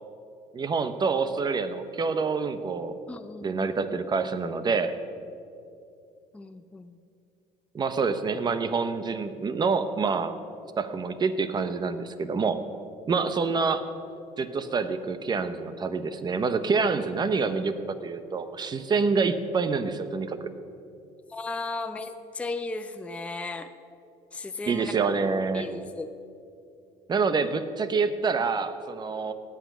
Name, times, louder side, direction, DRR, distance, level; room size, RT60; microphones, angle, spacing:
voice 1, 0.5-2.9 3.4-4.9 7.7-10.3 10.8-12.6 13.1-13.8 14.4-20.4 24.7-25.7 27.1-29.3, right 4 dB, 30° right, 11 dB, 0.9 m, -27 dB
voice 2, 3.1-3.7 6.3-7.0 21.3-23.7 24.3-24.9 25.5-26.1, left 3 dB, 10° left, 8 dB, 0.5 m, -35 dB
17.5 x 8.3 x 6.1 m, 2.5 s
cardioid pair, 110°, 14 cm